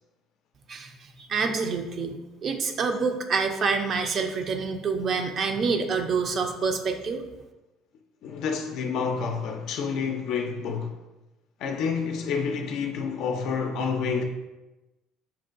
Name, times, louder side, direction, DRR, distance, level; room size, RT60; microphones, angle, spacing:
voice 1, 1.2-7.2, right 5 dB, 50° right, 0.4 m, -27 dB
voice 2, 8.2-11.0 11.6-14.2, left 5 dB, 65° left, 0.4 m, -29 dB
5.6 x 2.2 x 2.4 m
supercardioid pair, 85°, 0 cm